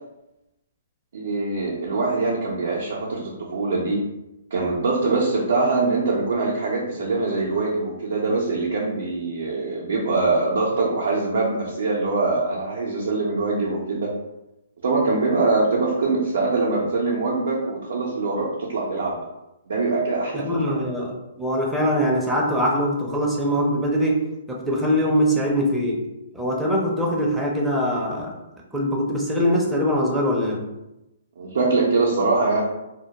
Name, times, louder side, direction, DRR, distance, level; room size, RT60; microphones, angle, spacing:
voice 1, 1.1-4.0 4.5-14.1 14.8-19.2 19.7-20.5 31.4-32.6, right 3 dB, 70° right, -3 dB, 0.5 m, -23 dB
voice 2, 20.3-26.0 26.3-28.3 28.7-30.6, equal, 5° right, -2 dB, 0.5 m, -22 dB
2.1 x 2.0 x 2.8 m, 0.95 s
hypercardioid pair, 135°, 0 cm